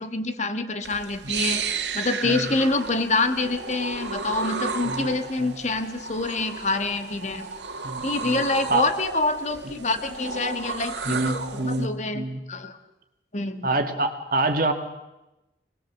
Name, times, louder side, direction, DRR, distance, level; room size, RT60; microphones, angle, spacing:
voice 1, 0.0-1.6 1.9-7.5 8.0-12.8 13.3-13.7, left 3 dB, 40° left, 8 dB, 1.5 m, -26 dB
sound 1, 0.8-11.9, right 5 dB, 85° right, 2.0 m, -33 dB
voice 2, 7.8-8.4 8.7-8.9 11.0-11.9 12.1-12.4 13.6-14.7, right 2 dB, 50° right, 5 dB, 2.2 m, -26 dB
26.5 x 20.0 x 7.5 m, 0.95 s
head